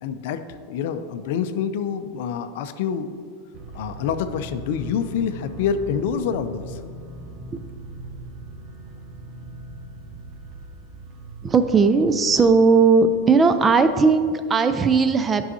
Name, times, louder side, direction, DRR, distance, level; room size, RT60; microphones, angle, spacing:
voice 1, 0.0-3.2 3.7-6.8, left 7 dB, 65° left, 10 dB, 0.4 m, -27 dB
sound 1, 3.5-13.9, right 2 dB, 45° right, 1.0 m, -40 dB
voice 2, 11.4-15.5, right 4 dB, 25° right, 10 dB, 0.4 m, -17 dB
9.8 x 5.5 x 2.7 m, 2.1 s
hypercardioid pair, 100°, 0 cm